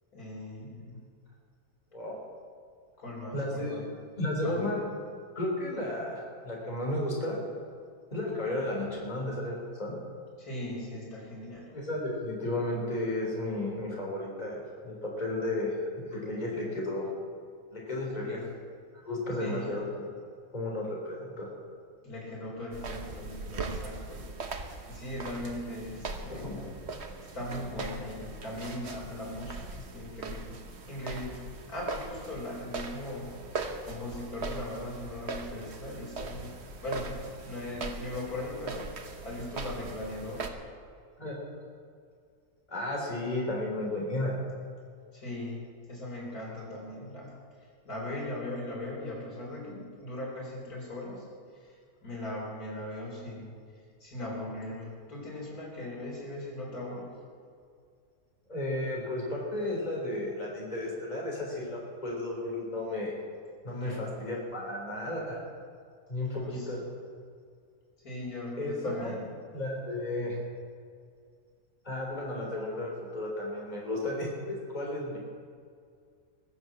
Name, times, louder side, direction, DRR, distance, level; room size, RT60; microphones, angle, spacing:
voice 1, 0.1-1.0 3.0-3.8 4.4-4.7 10.4-11.7 18.2-18.5 19.4-19.7 22.0-24.3 24.9-26.5 27.3-30.6 30.9-31.4 31.7-33.3 33.8-36.5 36.8-37.1 37.4-38.9 39.2-40.6 45.1-45.6 45.9-47.3 47.8-51.2 52.0-53.6 54.0-57.1 63.7-64.0 66.3-66.7 68.0-69.3, left 1 dB, 85° left, -3 dB, 4.5 m, -39 dB
voice 2, 3.3-3.8 4.2-4.8 5.4-7.4 8.1-9.9 11.7-17.1 17.7-18.4 19.0-20.0 20.5-21.5 26.3-26.7 41.2-41.4 42.7-44.3 58.5-63.1 63.6-65.4 66.1-66.8 68.6-69.1 69.5-70.4 71.8-75.2, left 1 dB, 30° left, -3 dB, 3.9 m, -33 dB
sound 1, 22.7-40.5, right 3 dB, 50° right, 1.3 m, -40 dB
21.5 x 7.8 x 7.5 m, 2.2 s
omnidirectional pair, 1.5 m